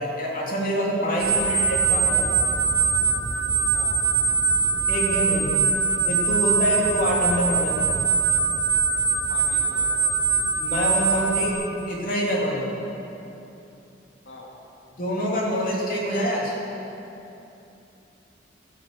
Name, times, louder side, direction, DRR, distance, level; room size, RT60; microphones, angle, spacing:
voice 1, 0.0-2.3 4.9-5.7 6.0-8.0 10.6-12.7 15.0-16.6, equal, 50° left, -3 dB, 2.9 m, -26 dB
sound 1, 1.2-11.5, right 5 dB, 80° right, 2.5 m, -22 dB
voice 2, 9.3-10.2 14.3-14.5, left 1 dB, 90° left, -2 dB, 2.1 m, -44 dB
13.0 x 10.0 x 7.7 m, 2.9 s
head